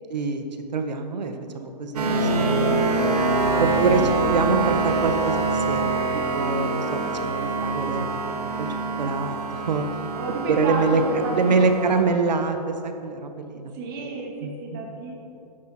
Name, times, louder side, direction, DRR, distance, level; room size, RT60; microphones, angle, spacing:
voice 1, 0.1-0.4 0.7-2.9 3.6-6.0 6.3-8.1 8.6-8.7 9.0-9.8 10.5-11.0 11.4-13.8 14.4-15.0, right 4 dB, 90° right, 6 dB, 1.6 m, -25 dB
sound 1, 2.0-12.0, right 3 dB, 65° right, 2.1 m, -25 dB
voice 2, 3.6-4.5 10.1-11.8 13.7-15.1, right 3 dB, 30° right, -1 dB, 2.2 m, -31 dB
14.0 x 10.5 x 4.5 m, 2.8 s
hypercardioid pair, 170°, 21 cm